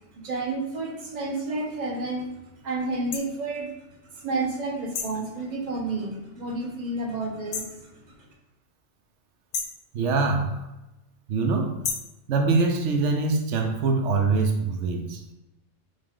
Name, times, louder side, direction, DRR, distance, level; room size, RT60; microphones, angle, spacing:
voice 1, 0.1-2.3 2.6-3.7 4.1-7.8, right 2 dB, 40° right, 0 dB, 0.9 m, -30 dB
sound 1, 3.1-3.3 4.9-5.2 7.5-7.8 9.5-9.8 11.8-12.2, left 5 dB, 60° left, 0.4 m, -31 dB
voice 2, 9.9-10.6 11.3-11.8 12.3-15.3, right 3 dB, 85° right, 4 dB, 0.9 m, -24 dB
4.9 x 2.5 x 3.6 m, 0.97 s
omnidirectional pair, 1.2 m